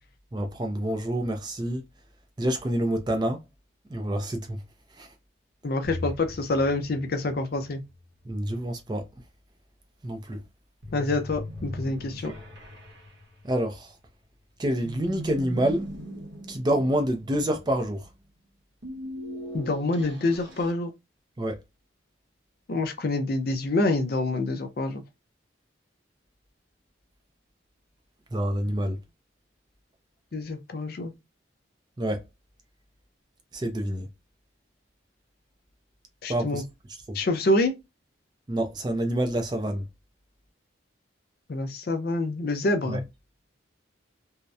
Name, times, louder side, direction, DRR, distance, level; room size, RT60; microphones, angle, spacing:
voice 1, 0.3-1.8 2.4-3.4 3.9-4.6 4.9-5.1 8.3-9.1 10.0-10.4 13.4-13.9 14.6-15.9 16.5-18.1 21.4-21.6 28.3-29.0 32.0-32.2 33.5-34.1 36.3-36.6 37.1-37.2 38.5-39.8 42.9-43.0, right 1 dB, 20° right, 0.4 m, -27 dB
voice 2, 5.6-7.8 10.9-12.3 19.5-20.9 22.7-25.0 30.3-31.1 36.2-36.6 37.1-37.7 41.5-43.0, left 2 dB, 50° left, 0.4 m, -26 dB
sound 1, 5.8-8.0 10.8-13.9 14.8-17.8 18.8-20.7, left 1 dB, 70° right, 0.8 m, -39 dB
2.6 x 2.0 x 2.3 m
head